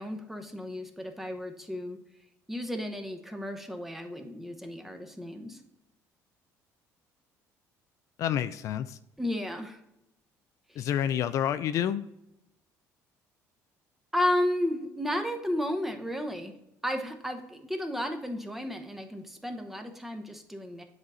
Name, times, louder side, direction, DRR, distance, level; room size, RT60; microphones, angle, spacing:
voice 1, 0.0-2.0 2.5-5.6 9.2-9.8 10.7-10.9 14.1-16.5 16.8-20.8, left 1 dB, 5° right, 5 dB, 0.9 m, -33 dB
voice 2, 8.2-9.0 10.8-12.0, left 10 dB, 60° left, 12 dB, 0.3 m, -28 dB
7.8 x 4.0 x 4.1 m, 0.86 s
cardioid pair, 125°, 6 cm